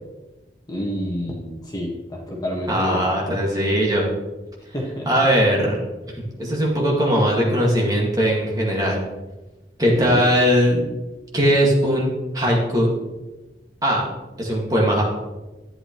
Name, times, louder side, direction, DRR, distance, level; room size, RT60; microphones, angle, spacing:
voice 1, 0.7-3.4 4.7-5.1 10.0-10.3, equal, 20° left, -2 dB, 1.6 m, -29 dB
voice 2, 2.7-4.1 5.1-5.8 6.4-9.0 9.8-10.9 11.3-12.9 13.8-14.1 14.4-15.0, equal, 20° right, -3 dB, 1.9 m, -19 dB
11.5 x 9.7 x 3.1 m, 1.1 s
head